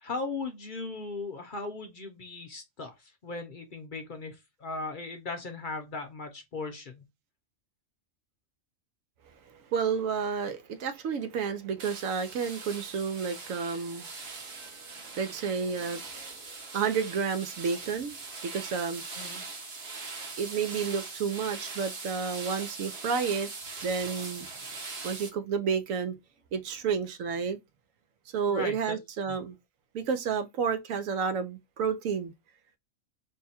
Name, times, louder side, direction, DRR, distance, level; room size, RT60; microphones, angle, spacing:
voice 1, 0.0-7.0 19.1-19.4 28.5-29.0 29.3-29.4, left 3 dB, 45° left, 0.7 m, -38 dB
voice 2, 9.5-16.4 16.7-18.2 18.4-19.0 20.4-23.5 23.8-24.5 25.0-26.2 26.5-27.6 28.3-29.6 29.9-32.3, right 6 dB, 90° right, 1.1 m, -31 dB
sound 1, 11.8-25.3, right 4 dB, 55° right, 1.2 m, -41 dB
3.4 x 2.2 x 4.2 m
omnidirectional pair, 1.3 m